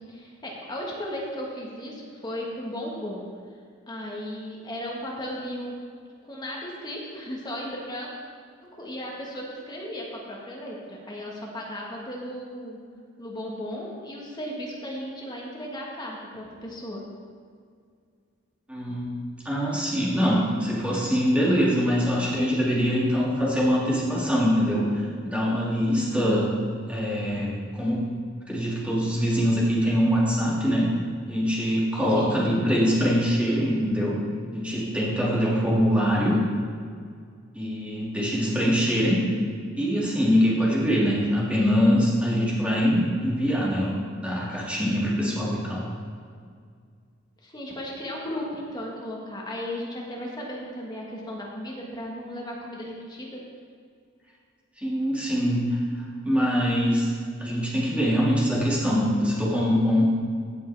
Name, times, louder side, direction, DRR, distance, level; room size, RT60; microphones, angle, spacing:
voice 1, 0.1-3.3 3.9-5.7 6.3-8.1 8.8-12.8 13.2-17.0 25.9-26.4 32.1-32.5 45.2-45.5 47.4-53.4, equal, 20° left, -3 dB, 1.4 m, -35 dB
voice 2, 18.7-19.1 19.5-24.9 25.2-26.5 26.9-28.1 28.5-30.9 31.3-34.2 34.5-36.4 37.6-39.3 39.8-45.8 54.8-55.8 56.2-57.1 57.4-60.1, equal, 5° right, -6 dB, 2.0 m, -23 dB
16.0 x 5.4 x 3.3 m, 2.1 s
head